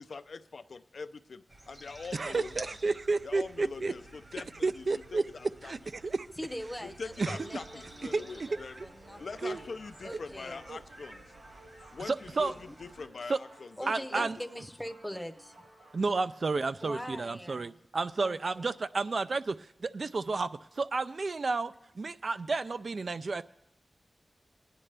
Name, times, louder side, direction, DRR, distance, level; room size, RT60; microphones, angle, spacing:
voice 1, 0.0-2.8 3.2-5.7 6.8-8.8 9.2-11.3 11.9-14.3, left 4 dB, 70° left, 11 dB, 0.5 m, -43 dB
sound 1, 1.5-13.1, right 2 dB, 35° right, 1.2 m, -52 dB
voice 2, 2.1-3.9 4.6-5.2 5.6-5.8 6.0-6.2 7.2-7.4 8.1-8.2 9.4-9.6 10.1-10.2 10.7-10.8 12.1-12.5 13.3-13.4 13.9-14.4 15.9-23.4, right 3 dB, 55° right, 12 dB, 0.4 m, -31 dB
voice 3, 6.4-9.6 10.0-10.6 12.5-12.7 13.8-15.5 16.8-18.6, equal, ahead, 4 dB, 0.7 m, -43 dB
sound 2, 7.0-17.1, right 1 dB, 85° right, 5.8 m, -56 dB
19.5 x 9.9 x 3.3 m, 0.82 s
wide cardioid pair, 105°, 0 cm